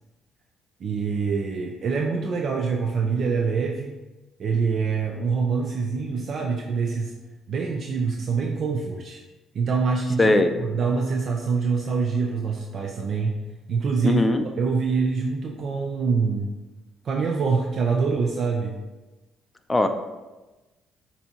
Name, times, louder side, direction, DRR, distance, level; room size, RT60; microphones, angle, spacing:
voice 1, 0.8-4.0 4.4-7.2 7.5-9.2 9.5-10.3 10.6-13.3 13.7-14.3 14.6-16.5 17.0-18.8, right 5 dB, 55° right, 1 dB, 0.4 m, -25 dB
voice 2, 10.2-10.6 14.0-14.4 19.7-19.9, left 2 dB, 20° left, 8 dB, 0.4 m, -19 dB
6.7 x 2.7 x 2.9 m, 1.1 s
cardioid pair, 85°, 0 cm